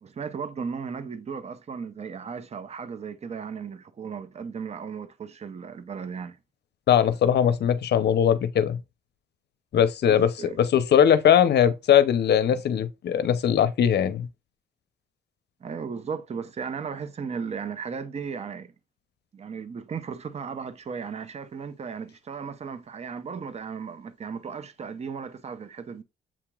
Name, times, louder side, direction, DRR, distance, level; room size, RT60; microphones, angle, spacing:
voice 1, 0.0-6.4 10.0-10.6 15.6-18.7 19.3-26.0, right 6 dB, 35° right, 0.6 m, -36 dB
voice 2, 6.9-8.8 9.7-10.3 10.6-14.3, left 9 dB, 55° left, 0.6 m, -20 dB
7.3 x 2.9 x 2.3 m
cardioid pair, 90°, 20 cm